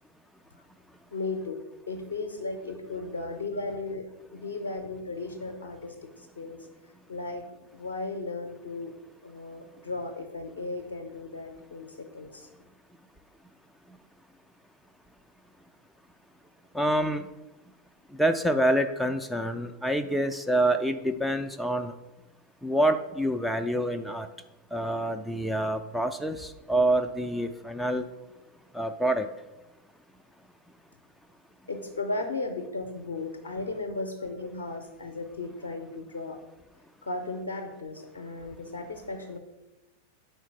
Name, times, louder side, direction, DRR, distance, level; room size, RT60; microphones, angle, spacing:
voice 1, 1.1-1.6 1.9-6.6 7.1-7.4 7.7-8.9 9.2-12.5 31.7-36.4 37.0-39.4, left 3 dB, 70° left, 3 dB, 0.6 m, -35 dB
voice 2, 16.7-17.3 18.2-21.9 22.6-24.3 24.7-28.0 28.7-29.3, right 1 dB, ahead, 6 dB, 0.3 m, -27 dB
4.5 x 4.4 x 5.6 m, 1.0 s
figure-of-eight pair, 90°, 0 cm